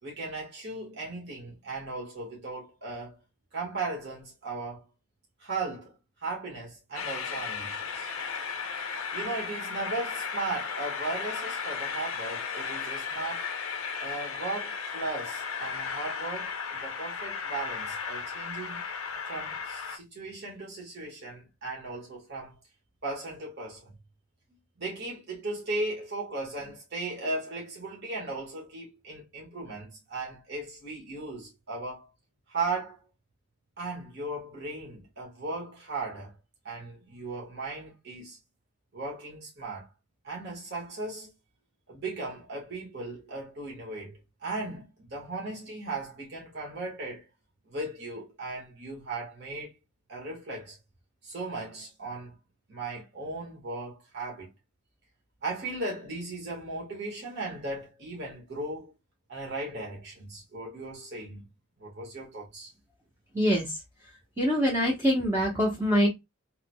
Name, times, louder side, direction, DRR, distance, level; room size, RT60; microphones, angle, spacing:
voice 1, 0.0-3.2 3.5-4.8 5.4-6.0 6.2-8.1 9.1-13.5 14.0-18.8 19.3-22.5 23.0-23.9 24.8-32.1 32.5-33.0 33.8-36.3 36.6-38.4 38.9-39.9 40.2-41.3 41.9-47.2 47.7-49.7 50.1-50.8 51.2-52.3 52.7-54.5 55.4-58.9 59.3-61.5 61.8-62.7, right 2 dB, 50° right, 1.6 m, -37 dB
Train, 6.9-20.0, left 6 dB, 75° left, 0.6 m, -35 dB
voice 2, 63.3-63.8 64.4-66.1, equal, 10° right, 0.9 m, -24 dB
3.6 x 3.0 x 2.2 m
head